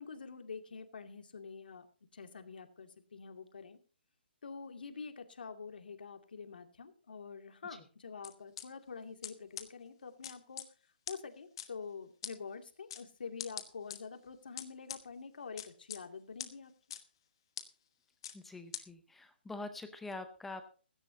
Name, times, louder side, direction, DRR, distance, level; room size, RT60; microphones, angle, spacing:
voice 1, 0.0-1.9 2.1-3.8 4.4-10.7 11.1-16.7, left 5 dB, 60° left, 5 dB, 2.4 m, -46 dB
sound 1, 8.2-8.6 9.2-9.3 9.6-9.7 10.2-10.7 11.1-11.2 11.6-11.7 12.2-12.3 12.9-13.0 13.4-14.0 14.6-15.0 15.6-16.0 16.4-16.5 16.9-17.0 17.6-17.7 18.2-18.3 18.7-18.8, left 10 dB, 25° left, 1.2 m, -42 dB
voice 2, 18.3-20.6, left 2 dB, 5° left, 9 dB, 0.6 m, -45 dB
16.5 x 16.5 x 2.8 m, 0.38 s
hypercardioid pair, 180°, 6 cm